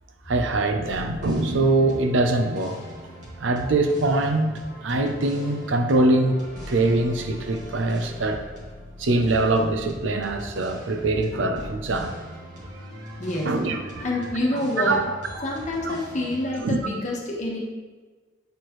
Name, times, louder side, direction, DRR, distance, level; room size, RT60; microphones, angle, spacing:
voice 1, 0.3-2.8 3.4-6.4 6.7-8.4 9.0-12.1 13.0-13.2 13.4-14.1 14.8-15.0 15.3-15.4 15.8-16.0 16.6-16.8, right 2 dB, 70° right, 6 dB, 0.6 m, -23 dB
sound 1, 0.6-16.6, equal, 40° right, 1.9 m, -40 dB
voice 2, 13.2-13.5 14.0-15.0 15.4-17.6, left 1 dB, 40° left, -2 dB, 1.2 m, -27 dB
8.2 x 4.4 x 3.1 m, 1.4 s
head